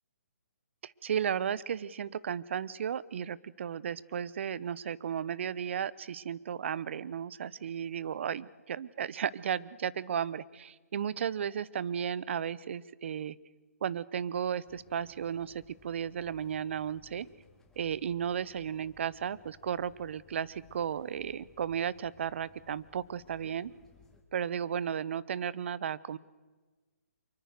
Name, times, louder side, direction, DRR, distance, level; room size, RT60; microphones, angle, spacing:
voice 1, 0.8-13.4 13.8-17.3 17.8-23.7 24.3-26.2, right 8 dB, 50° right, 20 dB, 0.8 m, -34 dB
sound 1, 14.6-24.2, left 5 dB, 5° left, 2.3 m, -62 dB
25.0 x 23.5 x 6.6 m, 1.3 s
hypercardioid pair, 150°, 8 cm